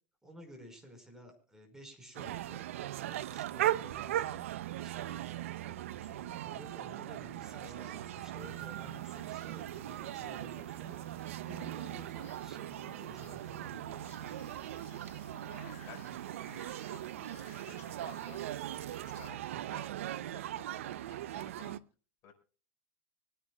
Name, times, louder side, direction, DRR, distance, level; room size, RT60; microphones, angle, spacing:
voice 1, 0.2-2.6 3.1-14.5, equal, 5° right, 4 dB, 5.2 m, -53 dB
sound 1, 2.1-21.8, right 13 dB, 80° right, 0.7 m, -39 dB
voice 2, 7.6-8.2 15.3-18.4 18.8-21.8 22.2-22.3, left 7 dB, 45° left, 3 dB, 5.1 m, -55 dB
sound 2, 8.4-19.3, left 10 dB, 90° left, 1.6 m, -61 dB
25.0 x 10.0 x 2.4 m, 0.37 s
supercardioid pair, 115°, 7 cm